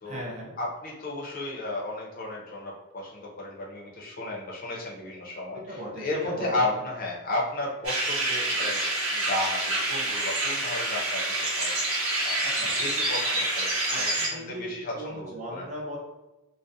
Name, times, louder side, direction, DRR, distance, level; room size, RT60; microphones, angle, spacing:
voice 1, 0.0-0.5 5.5-6.7 12.4-12.8 13.9-16.0, equal, 35° right, -3 dB, 0.5 m, -38 dB
voice 2, 0.6-8.8 9.1-15.6, left 2 dB, 40° left, -3 dB, 0.6 m, -34 dB
sound 1, 7.8-14.3, right 2 dB, 80° right, 0.7 m, -27 dB
2.4 x 2.0 x 2.6 m, 1.0 s
head